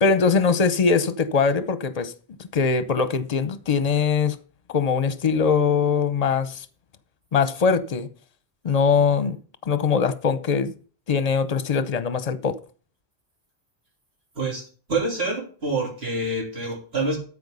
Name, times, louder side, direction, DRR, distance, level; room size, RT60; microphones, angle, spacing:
voice 1, 0.0-2.1 2.5-4.4 4.7-6.6 7.3-8.1 8.6-9.4 9.7-10.7 11.1-12.6, left 5 dB, 40° left, 0.8 m, -21 dB
voice 2, 14.9-17.2, right 2 dB, 70° right, 3.6 m, -26 dB
13.0 x 5.0 x 5.4 m
omnidirectional pair, 1.1 m